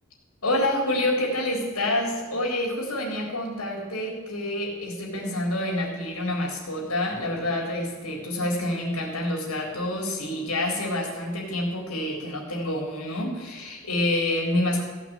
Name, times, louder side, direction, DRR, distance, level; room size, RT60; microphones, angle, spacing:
voice 1, 0.4-14.8, left 1 dB, 80° left, 0 dB, 3.9 m, -27 dB
16.0 x 6.1 x 8.9 m, 1.5 s
head